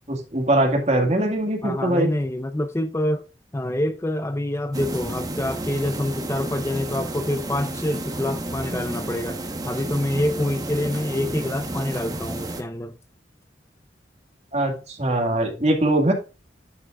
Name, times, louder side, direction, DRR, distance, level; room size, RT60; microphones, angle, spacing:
voice 1, 0.1-2.1 14.5-16.1, right 1 dB, 40° right, 1.9 m, -22 dB
voice 2, 1.6-3.2 3.5-12.9, left 1 dB, 15° left, 0.4 m, -26 dB
sound 1, 4.7-12.6, right 1 dB, 20° right, 1.1 m, -31 dB
11.0 x 5.9 x 2.4 m
head